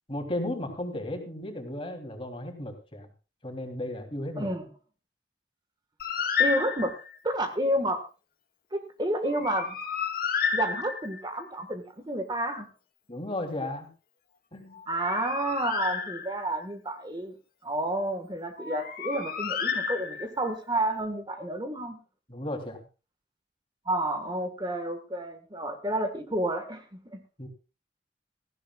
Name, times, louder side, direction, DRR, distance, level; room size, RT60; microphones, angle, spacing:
voice 1, 0.1-3.1 3.4-4.5 13.1-13.9 14.5-14.8 22.3-22.8 27.4-27.5, left 1 dB, 30° left, 4 dB, 3.0 m, -34 dB
voice 2, 4.4-4.7 6.4-6.9 7.2-8.0 8.7-9.8 10.5-12.7 14.9-17.3 17.6-22.0 23.8-27.2, right 1 dB, 25° right, 7 dB, 1.5 m, -30 dB
Bird, 6.0-7.2 9.2-11.3 14.7-16.6 18.6-20.5, left 6 dB, 55° left, 2.5 m, -31 dB
17.0 x 15.0 x 2.3 m, 0.32 s
head